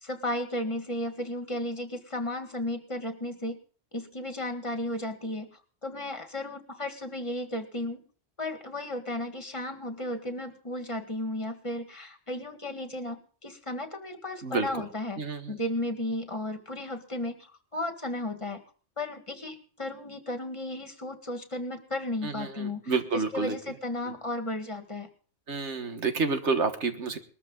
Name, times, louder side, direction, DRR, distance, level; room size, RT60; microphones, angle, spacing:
voice 1, 0.0-3.6 3.9-8.0 8.4-15.2 15.5-18.6 19.0-25.1, left 1 dB, 25° left, 6 dB, 2.0 m, -34 dB
voice 2, 15.2-15.5 22.2-23.6 25.5-27.2, right 4 dB, 85° right, 7 dB, 1.8 m, -29 dB
20.5 x 13.5 x 3.9 m, 0.42 s
omnidirectional pair, 1.1 m